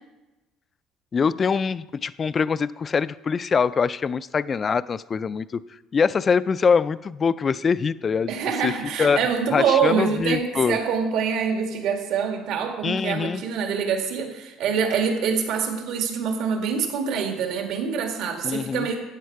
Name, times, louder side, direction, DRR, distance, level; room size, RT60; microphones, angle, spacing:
voice 1, 1.1-5.6 5.9-8.3 8.6-8.7 9.0-9.2 9.5-10.8 12.8-13.4 18.4-18.9, left 5 dB, 30° left, 17 dB, 0.3 m, -23 dB
voice 2, 8.3-19.0, right 6 dB, 70° right, 3 dB, 1.9 m, -25 dB
14.0 x 9.3 x 4.7 m, 1.1 s
cardioid pair, 130°, 0 cm